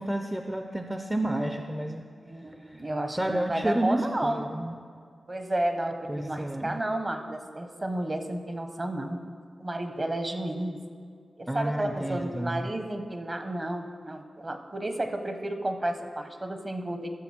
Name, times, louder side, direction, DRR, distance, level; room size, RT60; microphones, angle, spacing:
voice 1, 0.0-2.1 2.6-4.7 6.1-6.8 11.5-12.7, right 1 dB, 10° right, 5 dB, 0.4 m, -31 dB
voice 2, 2.2-4.5 5.3-9.2 9.6-10.8 11.4-17.1, right 1 dB, 30° right, 6 dB, 0.8 m, -32 dB
13.0 x 6.6 x 4.3 m, 2.1 s
wide cardioid pair, 100°, 0 cm